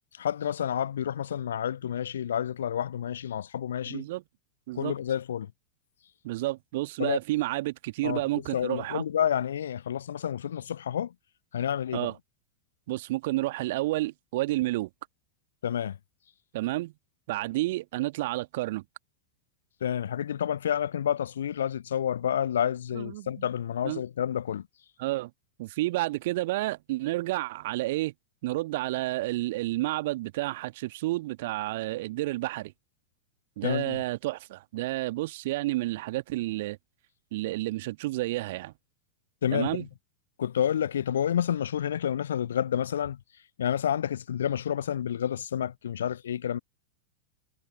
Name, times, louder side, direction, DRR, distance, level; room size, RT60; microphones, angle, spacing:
voice 1, 0.2-4.0 4.8-5.5 7.0-7.2 8.0-8.2 8.5-11.1 11.5-12.1 15.6-16.0 19.8-24.6 33.6-34.0 39.4-39.8 40.4-43.2 43.6-46.6, left 9 dB, 65° left, 0.6 m, -29 dB
voice 2, 3.9-4.2 4.7-4.9 6.2-9.0 11.9-12.1 12.9-14.9 16.5-16.9 17.3-18.8 22.9-23.5 23.8-24.0 25.0-25.3 25.6-28.1 28.4-32.7 33.6-36.8 37.3-38.7 39.5-39.8, right 18 dB, 50° right, 1.5 m, -30 dB
figure-of-eight pair, 90°, 0 cm